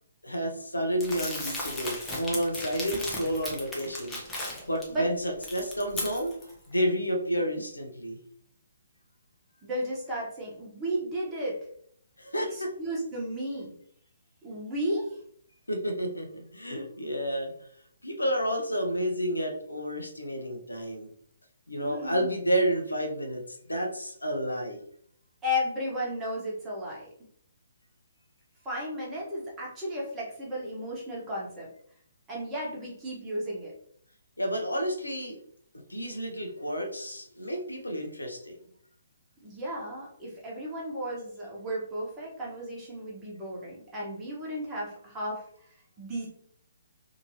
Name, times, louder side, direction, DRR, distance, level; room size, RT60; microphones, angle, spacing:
voice 1, 0.2-6.4 6.7-8.2 12.2-12.7 15.7-17.5 18.0-21.1 21.7-23.4 23.7-24.8 34.4-35.4 35.9-38.6, equal, 80° left, 3 dB, 0.7 m, -30 dB
Crumpling crinkling, 1.0-4.8 5.2-6.5, left 1 dB, 10° left, 0.6 m, -36 dB
voice 2, 9.6-11.6 12.5-13.7 14.4-15.1 21.8-22.3 25.4-27.1 28.6-31.7 32.3-33.7 39.4-45.4 46.0-46.3, equal, 15° right, -5 dB, 1.0 m, -34 dB
2.8 x 2.6 x 2.9 m, 0.63 s
figure-of-eight pair, 135°, 0 cm